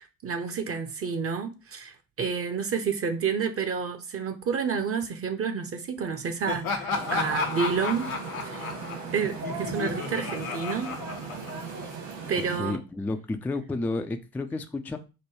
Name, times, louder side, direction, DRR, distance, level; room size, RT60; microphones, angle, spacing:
voice 1, 0.0-8.1 8.4-8.7 9.1-10.9 12.3-12.8, right 6 dB, 35° right, 0.7 m, -29 dB
Laughter, 6.5-11.9, left 5 dB, 85° left, 0.7 m, -33 dB
sound 1, 6.9-12.6, right 4 dB, 65° right, 1.9 m, -37 dB
voice 2, 12.6-15.0, left 2 dB, 5° left, 0.3 m, -31 dB
5.3 x 2.2 x 3.1 m
figure-of-eight pair, 50°, 41 cm